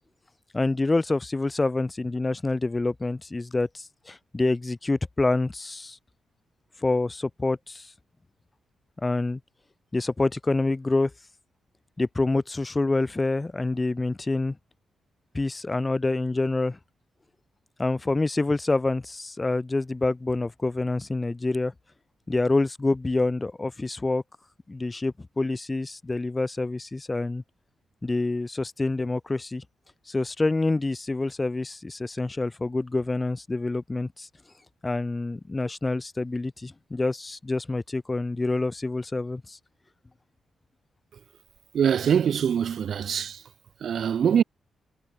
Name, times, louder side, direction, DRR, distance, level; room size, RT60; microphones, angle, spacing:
voice 1, 0.5-6.0 6.8-7.9 9.0-9.4 9.9-11.1 12.0-14.6 15.3-16.8 17.8-21.7 22.3-24.2 24.7-27.4 28.0-29.6 30.1-34.3 34.8-39.6, left 2 dB, 20° left, 3.0 m, -27 dB
voice 2, 41.7-43.5 43.8-44.4, right 8 dB, 60° right, 3.8 m, -23 dB
wide cardioid pair, 135°, 0 cm